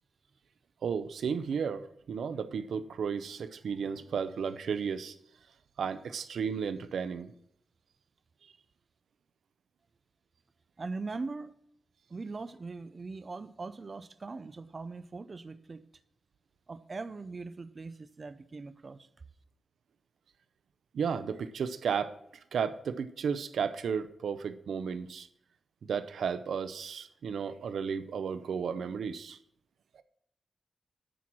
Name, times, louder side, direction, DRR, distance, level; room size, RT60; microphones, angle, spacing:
voice 1, 0.8-5.1 5.8-7.3 20.9-22.2 22.5-25.3 25.9-29.4, right 6 dB, 85° right, 0.6 m, -33 dB
voice 2, 10.8-11.5 12.1-15.8 16.7-19.1, right 3 dB, 35° right, 0.5 m, -41 dB
10.0 x 4.6 x 7.3 m
wide cardioid pair, 115°, 0 cm